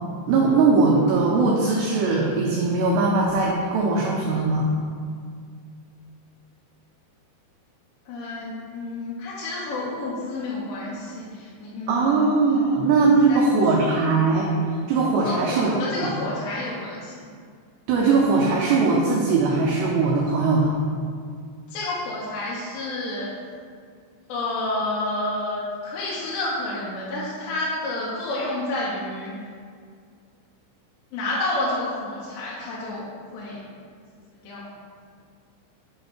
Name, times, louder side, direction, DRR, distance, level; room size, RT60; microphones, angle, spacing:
voice 1, 0.3-4.7 11.9-14.6 14.9-15.7 16.0-16.1 17.9-20.7, right 3 dB, 80° right, -3 dB, 2.5 m, -20 dB
voice 2, 8.1-12.7 13.3-14.1 15.2-17.3 21.7-23.3 24.3-29.3 31.1-33.6 34.3-34.6, left 2 dB, 75° left, -7 dB, 2.9 m, -30 dB
7.7 x 3.1 x 5.8 m, 2.1 s
omnidirectional pair, 5.5 m